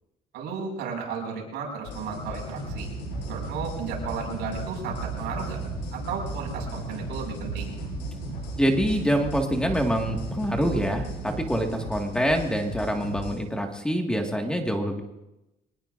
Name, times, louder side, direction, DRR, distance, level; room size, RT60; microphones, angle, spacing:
voice 1, 0.3-2.9 3.2-5.6 5.9-7.7, right 5 dB, 80° right, 0 dB, 6.1 m, -34 dB
sound 1, 1.9-13.4, left 3 dB, 85° left, 7.7 m, -38 dB
sound 2, 2.5-11.7, right 7 dB, 65° right, 1.6 m, -37 dB
voice 2, 8.6-15.0, equal, 5° left, 2 dB, 2.0 m, -26 dB
24.0 x 20.0 x 2.7 m, 0.95 s
cardioid pair, 110°, 17 cm